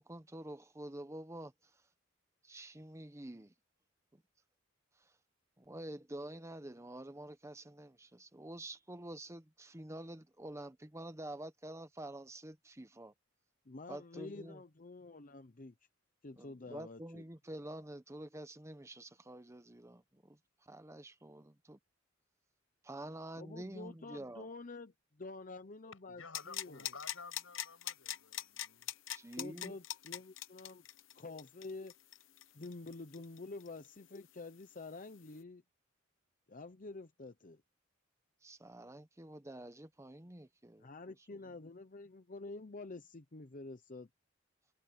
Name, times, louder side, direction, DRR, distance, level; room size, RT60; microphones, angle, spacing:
voice 1, 0.0-1.5 2.4-3.5 4.1-4.2 5.0-5.1 5.6-13.1 13.9-14.6 16.4-21.8 22.8-24.5 29.1-29.7 38.4-40.9, right 1 dB, 15° right, 1.0 m, -48 dB
voice 2, 13.7-15.7 16.2-17.2 23.4-26.9 29.4-30.8 31.1-31.9 32.5-35.6 36.5-37.6 40.8-44.1, left 3 dB, 40° left, 0.8 m, -48 dB
voice 3, 26.1-28.9, left 4 dB, 85° left, 6.4 m, -53 dB
sound 1, 26.3-33.9 34.1-34.2, left 12 dB, 70° left, 1.0 m, -42 dB
head